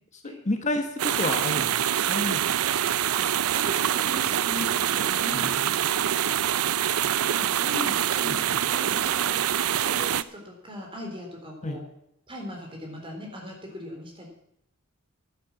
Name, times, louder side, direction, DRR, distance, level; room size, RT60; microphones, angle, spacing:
voice 1, 0.2-1.7 2.1-2.4 5.3-5.5 7.0-7.1 11.6-11.8, left 1 dB, 35° left, 5 dB, 1.3 m, -30 dB
sound 1, 1.0-10.2, right 10 dB, 70° right, 0.5 m, -25 dB
voice 2, 3.1-5.5 6.9-9.5 9.8-11.8 12.3-14.3, left 1 dB, 25° right, 1 dB, 3.9 m, -39 dB
11.0 x 10.5 x 7.2 m, 0.78 s
head